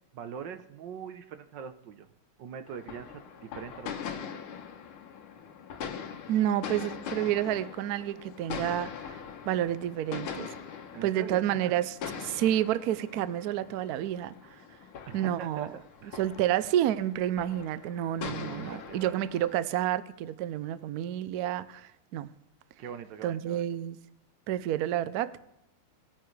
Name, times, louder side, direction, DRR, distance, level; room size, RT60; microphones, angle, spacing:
voice 1, 0.1-2.1 2.4-4.2 10.9-11.6 15.1-15.7 16.0-16.2 18.2-19.2 22.8-23.6, right 7 dB, 65° right, 1.4 m, -42 dB
sound 1, 2.7-19.6, left 7 dB, 85° left, 1.9 m, -42 dB
voice 2, 6.3-9.2 9.5-10.5 11.0-14.3 15.1-15.7 16.2-22.3 23.2-24.0 24.5-25.4, right 12 dB, 90° right, 0.8 m, -29 dB
20.5 x 9.3 x 3.2 m
omnidirectional pair, 2.3 m